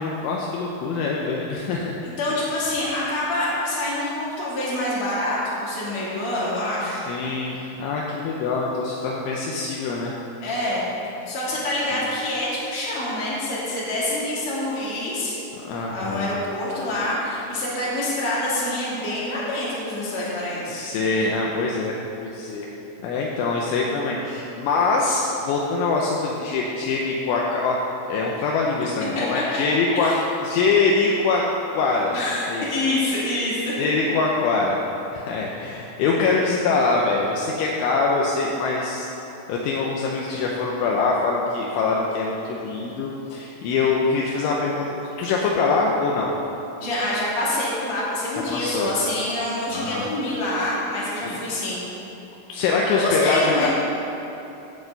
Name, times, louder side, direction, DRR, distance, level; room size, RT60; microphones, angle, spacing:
voice 1, 0.0-2.0 6.9-10.1 15.6-16.3 20.7-22.7 23.0-27.8 28.1-31.4 31.7-32.2 32.5-32.6 33.8-34.8 35.1-39.1 39.5-46.3 48.5-48.9 49.7-50.1 51.2-51.4 52.5-53.7, left 4 dB, 80° left, -2 dB, 3.1 m, -24 dB
voice 2, 2.0-7.0 10.4-10.9 11.3-15.4 15.9-20.8 29.2-29.4 29.9-30.2 32.1-33.8 46.8-51.8 52.9-53.7, left 1 dB, 45° left, -8 dB, 3.9 m, -26 dB
16.0 x 8.5 x 4.0 m, 2.9 s
omnidirectional pair, 5.7 m